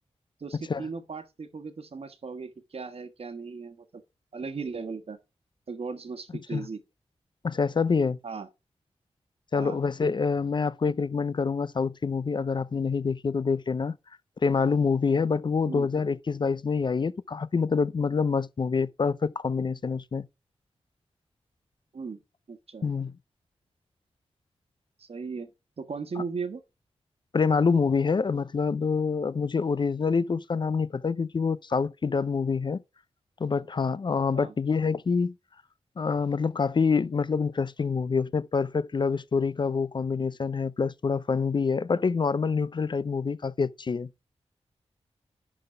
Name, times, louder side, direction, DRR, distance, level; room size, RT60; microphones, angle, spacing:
voice 1, 0.4-4.0 4.3-5.2 5.7-6.8 8.2-8.5 9.5-9.8 15.6-15.9 21.9-22.2 22.5-22.9 25.0-25.5 25.8-26.6 32.1-32.2 34.3-34.5, right 5 dB, 65° right, 1.4 m, -37 dB
voice 2, 7.4-8.2 9.5-13.9 14.4-20.3 22.8-23.1 27.3-32.8 33.4-35.3 36.0-44.1, left 5 dB, 45° left, 0.4 m, -26 dB
11.0 x 4.0 x 5.0 m
wide cardioid pair, 80°, 11 cm